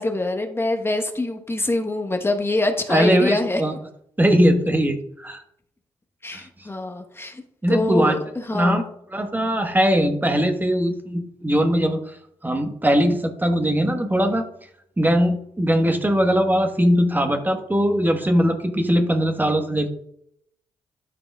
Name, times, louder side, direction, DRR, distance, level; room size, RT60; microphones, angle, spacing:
voice 1, 0.0-3.6 6.2-7.4 7.7-8.8, left 2 dB, 20° left, 5 dB, 1.1 m, -24 dB
voice 2, 2.9-3.7 4.2-5.4 6.3-6.4 7.6-8.2 8.5-8.8 9.1-12.2 12.4-14.4 15.0-19.9, equal, 15° right, 5 dB, 1.2 m, -20 dB
12.0 x 5.1 x 2.3 m, 0.73 s
hypercardioid pair, 40°, 12 cm